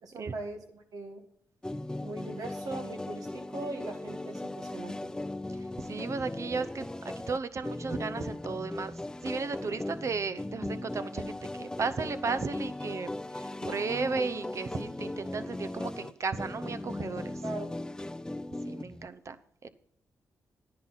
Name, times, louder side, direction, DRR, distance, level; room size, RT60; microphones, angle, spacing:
voice 1, 0.0-1.2 2.0-5.0 17.4-17.7, right 2 dB, 70° right, 4 dB, 1.8 m, -40 dB
sound 1, 1.6-19.1, left 1 dB, 10° left, 0.4 m, -38 dB
voice 2, 5.8-6.8 7.3-8.9 9.2-17.4 18.6-19.4 19.6-19.7, right 4 dB, 50° right, 12 dB, 0.8 m, -34 dB
10.5 x 9.6 x 4.1 m, 0.70 s
cardioid pair, 55°, 6 cm